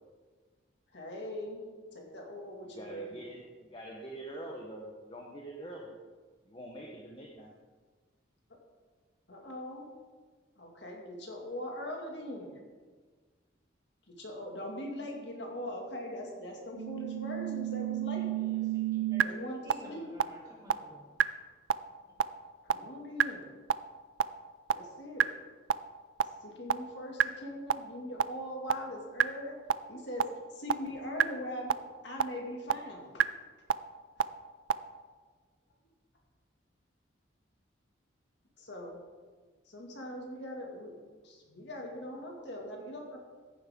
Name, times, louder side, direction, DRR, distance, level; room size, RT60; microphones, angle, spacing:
voice 1, 0.9-1.7 1.9-3.5 8.5-8.6 9.3-9.9 10.6-12.5 14.1-18.3 19.2-20.1 22.6-23.5 24.7-25.3 26.4-29.6 29.9-31.7 32.0-33.2 34.2-34.3 38.6-39.0 39.7-43.2, left 1 dB, 60° left, 0 dB, 2.2 m, -41 dB
voice 2, 2.7-6.0 6.4-7.5, right 1 dB, 25° left, 0 dB, 1.0 m, -45 dB
sound 1, 16.8-19.2 19.7-19.8 20.2-20.3 20.7-20.8 21.2-21.3 21.7-21.8 22.2-22.3 22.7-22.8 23.2-23.3 23.7-23.8 24.2-24.3 24.7-24.8 25.2-25.3 25.7-25.8 26.2-26.3 26.7-26.8 27.2-27.3 27.7-27.8 28.2-28.3 28.7-28.8 29.2-29.3 29.7-29.8 30.2-30.3 30.7-30.8 31.2-31.3 31.7-31.8 32.2-32.3 32.7-32.8 33.2-33.3 33.7-33.8 34.2-34.3 34.7-34.8, right 9 dB, 75° right, 0.4 m, -26 dB
voice 3, 18.1-19.3 19.6-21.1, equal, 20° right, -4 dB, 2.9 m, -52 dB
15.0 x 10.0 x 3.7 m, 1.5 s
head